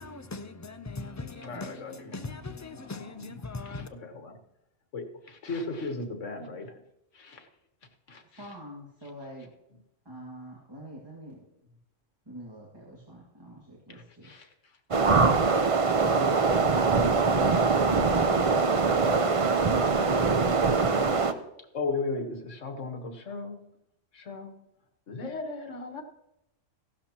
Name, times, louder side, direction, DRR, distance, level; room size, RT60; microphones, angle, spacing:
voice 1, 0.0-3.9, left 3 dB, 25° left, 0.3 m, -40 dB
voice 2, 1.4-2.2 2.7-4.4 4.9-6.8 7.1-7.5 8.1-8.5 9.7-9.8 13.9-15.5 21.7-23.7 24.1-24.6 25.1-26.0, left 3 dB, 70° left, 1.6 m, -37 dB
voice 3, 8.4-9.5 10.1-11.4 12.3-14.3 15.9-17.6, right 1 dB, 20° right, 2.1 m, -42 dB
sound 1, 14.9-21.3, right 4 dB, 35° right, 0.6 m, -23 dB
15.5 x 12.0 x 2.9 m
omnidirectional pair, 1.3 m